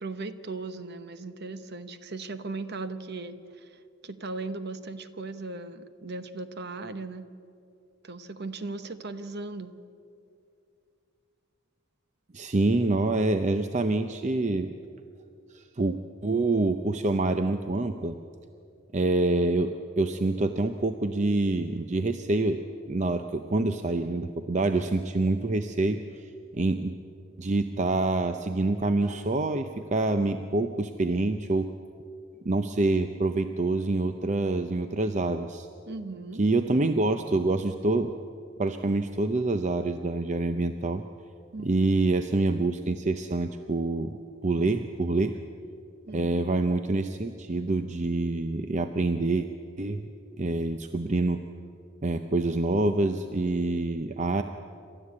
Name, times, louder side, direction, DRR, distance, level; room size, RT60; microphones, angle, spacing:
voice 1, 0.0-7.3 8.0-9.7 35.9-36.4 41.5-42.0 46.1-46.5, right 3 dB, 50° right, 11 dB, 1.0 m, -38 dB
voice 2, 12.3-14.7 15.5-18.2 18.9-22.6 22.9-26.9 27.4-31.7 32.4-35.7 36.4-38.1 38.6-41.0 41.6-45.4 46.1-49.5 49.8-50.1 50.4-51.4 52.0-54.4, right 2 dB, 35° right, 8 dB, 0.6 m, -26 dB
28.0 x 13.0 x 8.5 m, 2.6 s
head